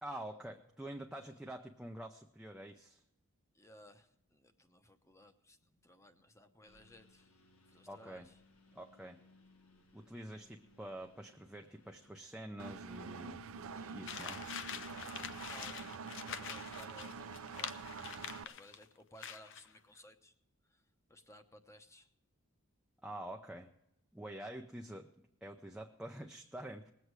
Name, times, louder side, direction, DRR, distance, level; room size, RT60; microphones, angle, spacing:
voice 1, 0.0-3.0 7.9-8.3 8.7-9.2 9.9-13.5 13.9-14.4 23.0-23.7 24.1-25.1 25.4-26.9, right 1 dB, 5° right, 2 dB, 0.5 m, -47 dB
voice 2, 3.5-7.4 7.7-8.4 13.7-17.8 18.4-20.3 20.6-22.1, equal, 15° left, 8 dB, 0.9 m, -60 dB
Engine, 6.7-12.1, left 2 dB, 90° left, 1.7 m, -66 dB
Engine 2, 12.6-18.4, right 5 dB, 70° right, 0.5 m, -46 dB
sound 1, 14.1-18.8 19.2-19.7, left 7 dB, 55° left, 0.7 m, -45 dB
20.0 x 8.2 x 4.6 m, 0.83 s
head